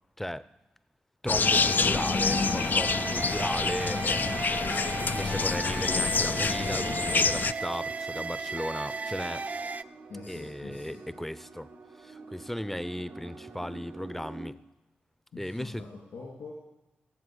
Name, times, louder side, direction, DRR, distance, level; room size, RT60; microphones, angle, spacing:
voice 1, 1.2-9.4 10.3-11.7 12.0-14.6 15.4-15.9, equal, 5° left, 16 dB, 0.7 m, -36 dB
sound 1, 1.3-7.5, left 4 dB, 50° left, 0.4 m, -27 dB
sound 2, 1.4-9.8, right 4 dB, 40° right, 0.4 m, -35 dB
sound 3, 6.8-14.5, right 3 dB, 80° right, 2.0 m, -47 dB
voice 2, 10.1-11.0 15.3-16.5, left 3 dB, 80° left, -3 dB, 2.9 m, -44 dB
16.5 x 7.9 x 8.0 m, 1.0 s
supercardioid pair, 45°, 4 cm